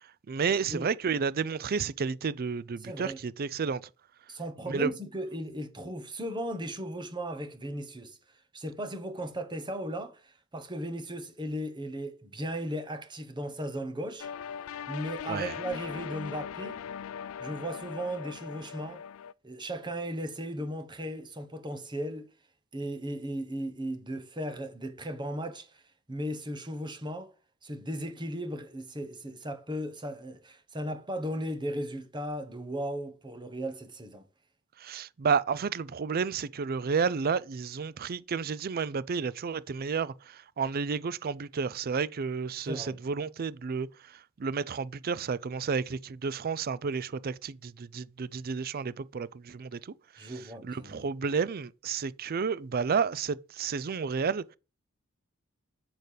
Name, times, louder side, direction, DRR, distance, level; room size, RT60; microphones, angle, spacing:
voice 1, 0.3-3.8 4.7-4.9 15.3-15.5 34.8-43.9 44.4-49.8 50.2-50.3 50.6-54.6, right 5 dB, 45° right, 0.4 m, -31 dB
voice 2, 2.8-3.2 4.3-8.2 8.5-14.3 14.9-16.8 17.4-19.0 19.4-22.3 22.7-25.8 26.1-27.3 27.6-34.2 42.7-43.0 50.2-51.1, equal, 20° right, 1.3 m, -36 dB
sound 1, 14.2-19.3, left 8 dB, 80° left, 0.4 m, -40 dB
7.9 x 6.6 x 5.1 m
head